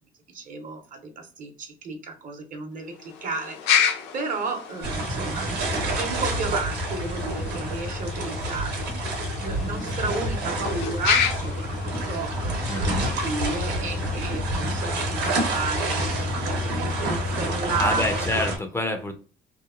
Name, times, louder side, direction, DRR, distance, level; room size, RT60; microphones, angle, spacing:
voice 1, 0.3-5.5 5.8-8.9 9.4-11.7 12.1-18.5, right 3 dB, 50° right, 5 dB, 0.8 m, -33 dB
sound 1, 2.9-14.4, left 7 dB, 85° left, 0.5 m, -31 dB
sound 2, 4.8-18.6, right 1 dB, 80° right, 0.9 m, -28 dB
voice 2, 12.6-13.2 17.8-19.1, left 2 dB, 15° left, 6 dB, 0.4 m, -27 dB
2.8 x 2.1 x 2.4 m, 0.38 s
cardioid pair, 110°, 17 cm